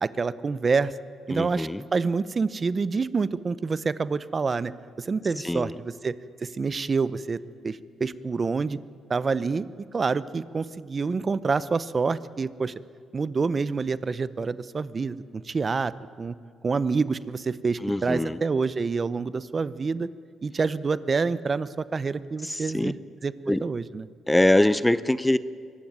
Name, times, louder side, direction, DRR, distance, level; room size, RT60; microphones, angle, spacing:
voice 1, 0.0-0.9 1.3-4.7 5.0-6.1 6.4-7.4 7.6-8.8 9.1-9.7 9.9-12.7 13.1-15.9 16.2-16.3 16.6-20.1 20.4-23.0 23.2-23.3 23.6-24.1, right 4 dB, 35° right, 16 dB, 0.7 m, -27 dB
voice 2, 1.3-1.9 5.4-5.8 17.8-18.4 22.4-22.9 23.5-23.7 24.3-25.4, left 1 dB, 10° left, 15 dB, 0.6 m, -23 dB
24.0 x 15.0 x 9.5 m, 2.2 s
cardioid pair, 90°, 0 cm